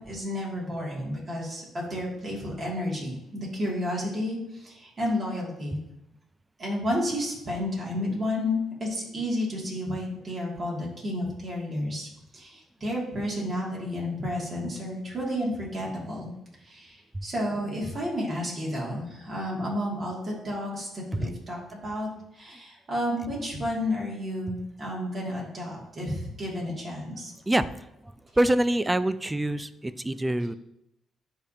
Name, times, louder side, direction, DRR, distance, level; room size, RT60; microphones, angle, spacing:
voice 1, 0.0-5.8 6.6-12.1 12.3-16.3 16.6-27.3, left 1 dB, 35° right, -4 dB, 2.4 m, -31 dB
voice 2, 28.0-30.5, right 1 dB, 15° right, 13 dB, 0.4 m, -25 dB
10.0 x 3.5 x 2.8 m, 0.84 s
cardioid pair, 90°, 0 cm